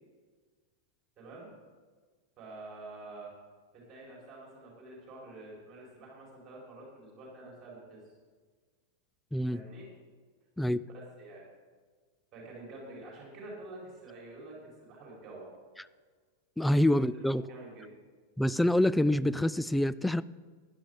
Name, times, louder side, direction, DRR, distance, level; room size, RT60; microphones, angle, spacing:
voice 1, 1.2-1.5 2.4-3.3 3.7-8.0 9.5-9.9 10.6-10.7 11.2-11.4 12.3-14.6 14.8-15.5 16.6-16.7 17.1-17.9, right 2 dB, 30° right, -3 dB, 4.8 m, -47 dB
voice 2, 16.6-17.4 18.4-20.2, left 1 dB, 5° left, 16 dB, 0.3 m, -26 dB
16.0 x 11.5 x 3.9 m, 1.5 s
figure-of-eight pair, 90°, 0 cm